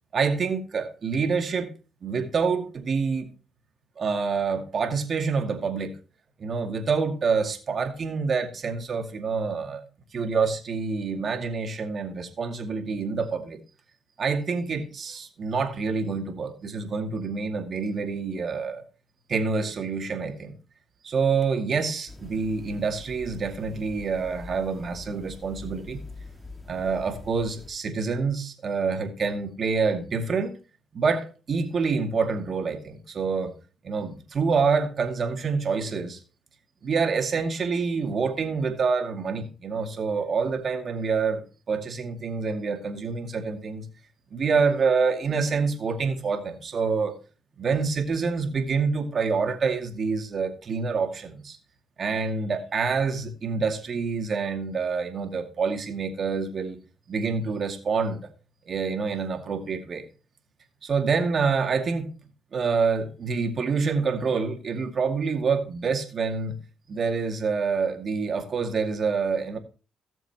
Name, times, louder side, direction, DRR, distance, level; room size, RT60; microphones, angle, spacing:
voice 1, 0.1-1.7 2.0-3.3 4.0-5.9 6.4-9.8 10.1-13.6 14.2-18.8 19.3-20.5 21.0-26.0 26.7-30.6 30.9-33.5 33.8-36.2 36.8-43.9 44.3-47.1 47.6-51.6 52.0-56.8 57.1-58.3 58.7-60.1 60.8-62.1 62.5-66.6 66.9-69.6, right 5 dB, 50° right, 2.3 m, -27 dB
sound 1, 22.1-27.7, left 3 dB, 20° left, 2.2 m, -44 dB
17.5 x 7.2 x 2.9 m
cardioid pair, 90°, 0 cm